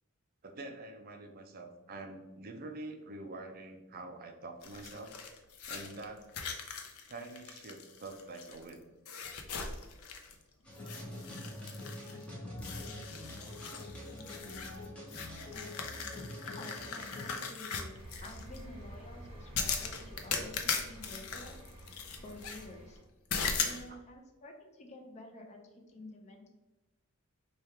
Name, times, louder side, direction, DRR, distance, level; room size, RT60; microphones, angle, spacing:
voice 1, 0.4-5.1 5.7-6.3 7.1-8.9, right 2 dB, 45° right, 5 dB, 0.5 m, -46 dB
sound 1, 4.6-8.7 9.1-10.4 10.7-12.2 12.6-18.6 19.5-22.7 23.3-23.8, left 5 dB, 80° left, 0.5 m, -39 dB
sound 2, 10.6-17.4, left 1 dB, 5° left, 0.8 m, -45 dB
voice 2, 16.3-21.6 22.2-23.0 23.6-25.6 25.9-26.5, left 1 dB, 30° left, 2 dB, 0.5 m, -50 dB
sound 3, 17.9-23.0, right 1 dB, 25° right, 1.1 m, -50 dB
3.3 x 2.3 x 4.3 m, 1.1 s
head